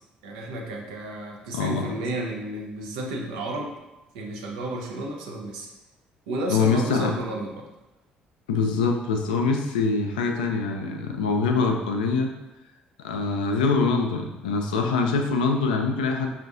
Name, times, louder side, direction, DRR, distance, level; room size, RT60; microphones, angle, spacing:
voice 1, 0.2-3.7 4.1-5.7 6.3-7.7, right 1 dB, 75° right, 0 dB, 0.6 m, -32 dB
voice 2, 1.5-1.9 6.5-7.1 8.5-12.3 13.0-16.3, left 4 dB, 80° left, 4 dB, 0.4 m, -24 dB
5.3 x 2.4 x 2.4 m, 1.0 s
figure-of-eight pair, 45°, 4 cm